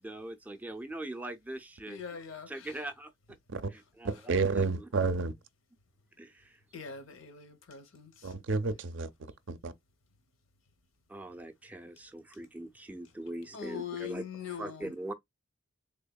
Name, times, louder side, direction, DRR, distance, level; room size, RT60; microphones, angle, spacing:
voice 1, 0.0-2.0 2.5-3.1 3.7-4.9 6.2-6.6 11.1-15.1, right 1 dB, 10° right, 0.4 m, -42 dB
voice 2, 1.9-2.7 6.7-8.3 13.5-14.9, left 7 dB, 80° left, 0.8 m, -42 dB
voice 3, 4.0-5.3 8.2-9.7, right 4 dB, 65° right, 0.5 m, -31 dB
3.5 x 3.4 x 2.2 m
head